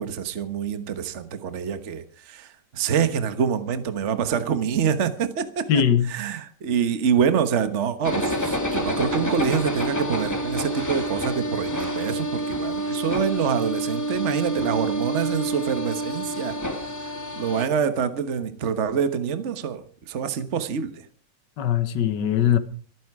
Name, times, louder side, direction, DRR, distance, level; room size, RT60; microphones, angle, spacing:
voice 1, 0.0-5.7 6.1-16.6 17.0-21.0, right 7 dB, 45° right, 1.4 m, -26 dB
voice 2, 5.7-6.2 21.6-22.6, left 9 dB, 85° left, 1.8 m, -21 dB
sound 1, 8.0-17.7, right 1 dB, 10° left, 2.3 m, -28 dB
25.5 x 9.4 x 4.8 m
omnidirectional pair, 1.8 m